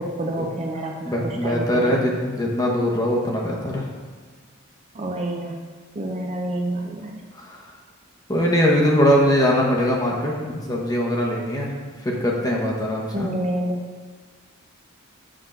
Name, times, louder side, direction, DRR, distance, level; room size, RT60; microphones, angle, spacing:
voice 1, 0.0-2.0 4.9-5.5 6.0-7.1 13.1-13.8, right 1 dB, 30° right, 0 dB, 0.6 m, -28 dB
voice 2, 1.0-3.9 7.3-7.6 8.3-11.7 12.0-13.3, equal, 15° left, -2 dB, 1.0 m, -21 dB
7.6 x 3.7 x 5.8 m, 1.5 s
head